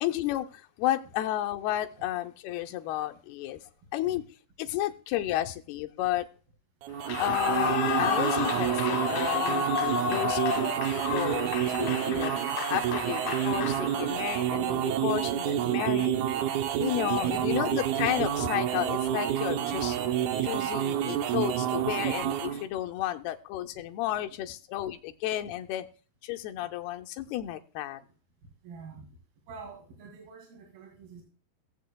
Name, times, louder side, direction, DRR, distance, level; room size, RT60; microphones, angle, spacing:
voice 1, 0.0-3.6 3.9-4.2 4.6-6.3 7.2-9.7 10.1-10.4 10.8-11.5 11.8-12.3 12.7-16.1 16.8-20.0 20.4-25.9 26.2-28.0, left 13 dB, 85° left, 5 dB, 2.6 m, -32 dB
sound 1, 6.8-22.7, right 11 dB, 85° right, 1.7 m, -29 dB
Clapping / Cheering / Applause, 7.0-14.4, left 7 dB, 60° left, 1.6 m, -32 dB
voice 2, 17.1-17.6 23.8-23.9 25.5-25.6 28.6-29.1 29.5-31.2, right 5 dB, 70° right, -1 dB, 4.4 m, -46 dB
19.0 x 7.5 x 2.3 m, 0.40 s
omnidirectional pair, 4.5 m